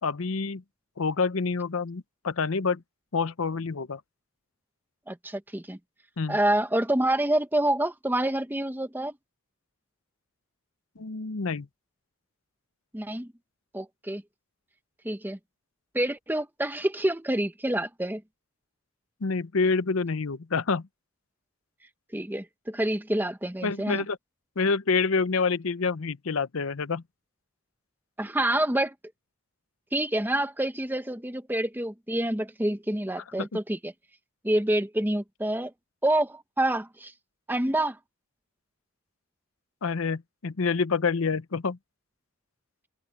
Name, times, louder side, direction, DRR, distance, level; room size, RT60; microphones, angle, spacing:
voice 1, 0.0-0.6 1.0-2.8 3.1-4.0 6.2-6.4 11.0-11.7 19.2-20.9 23.6-24.2 24.6-27.0 33.4-33.6 39.8-41.8, left 4 dB, 70° left, 0.7 m, -27 dB
voice 2, 5.1-5.8 6.3-9.2 12.9-13.3 13.7-14.2 15.0-15.4 15.9-18.2 22.1-24.0 28.2-28.9 29.9-33.9 34.4-35.7 36.0-37.1 37.5-38.0, right 1 dB, 10° right, 0.8 m, -27 dB
head